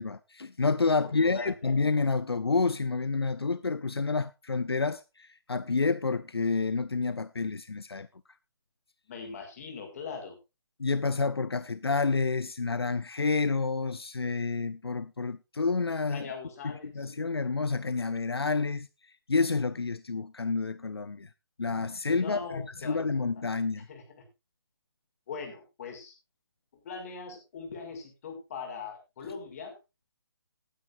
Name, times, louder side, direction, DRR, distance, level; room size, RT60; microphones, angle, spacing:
voice 1, 0.0-8.1 10.8-16.3 16.6-21.3 21.6-23.9, left 4 dB, 80° left, 0.8 m, -29 dB
voice 2, 1.0-1.7 9.1-10.4 16.1-17.1 22.2-23.0 23.8-24.2 25.3-26.1 26.8-29.8, left 5 dB, 40° left, 5.7 m, -41 dB
19.5 x 9.7 x 2.6 m
figure-of-eight pair, 150°, 13 cm